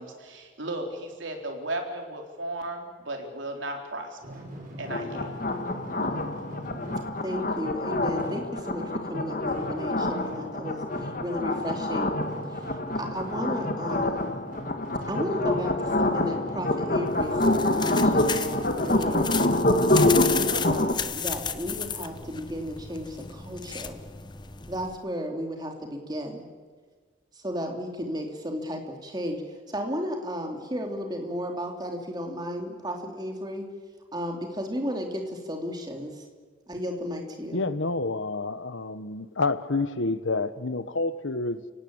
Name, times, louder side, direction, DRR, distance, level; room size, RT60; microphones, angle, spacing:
voice 1, 0.0-4.2 4.8-5.3, right 1 dB, 75° right, 3 dB, 4.0 m, -35 dB
sound 1, 4.2-20.0, equal, 45° right, 6.3 m, -43 dB
sound 2, 4.9-20.9, left 2 dB, 45° left, 1.6 m, -26 dB
voice 2, 6.7-8.8 9.1-12.1 12.5-14.3 15.1-19.3 19.9-24.0 24.7-26.5 27.3-33.6 34.1-36.3 36.7-37.6, equal, 20° right, 2 dB, 3.1 m, -34 dB
sound 3, 17.1-25.0, left 7 dB, 20° left, 0.9 m, -34 dB
voice 3, 37.5-41.7, left 3 dB, 75° left, 14 dB, 1.1 m, -28 dB
30.0 x 17.5 x 8.8 m, 1.5 s
head